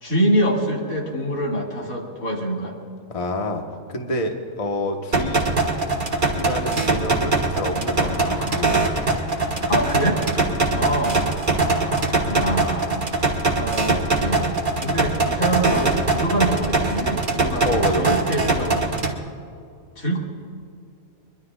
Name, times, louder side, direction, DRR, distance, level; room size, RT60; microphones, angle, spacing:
voice 1, 0.0-2.8 9.7-10.2 10.7-11.2 11.7-11.9 12.2-13.0 13.6-14.5 14.8-18.8 20.0-20.2, right 1 dB, 75° left, -2 dB, 2.9 m, -25 dB
voice 2, 3.1-3.6 3.9-6.0 6.3-8.8 10.5-10.7 14.8-15.0 17.6-18.2, left 1 dB, 25° left, 2 dB, 1.2 m, -28 dB
sound 1, 5.1-19.1, right 3 dB, 35° right, 1.7 m, -22 dB
sound 2, 7.9-13.0, left 3 dB, 45° left, 1.4 m, -39 dB
23.5 x 23.0 x 2.4 m, 2.4 s
omnidirectional pair, 1.5 m